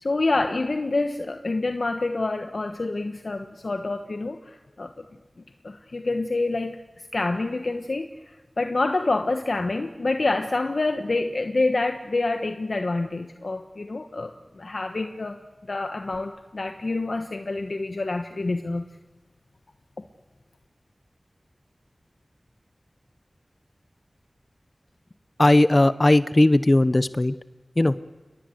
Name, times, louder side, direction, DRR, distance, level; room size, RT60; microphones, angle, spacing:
voice 1, 0.0-5.0 5.6-6.8 7.1-15.4 15.7-18.8, left 2 dB, 70° left, 7 dB, 1.2 m, -27 dB
voice 2, 25.4-27.4 27.8-28.0, left 1 dB, 35° left, 15 dB, 0.8 m, -18 dB
29.0 x 20.5 x 7.9 m, 1.2 s
wide cardioid pair, 45°, 0 cm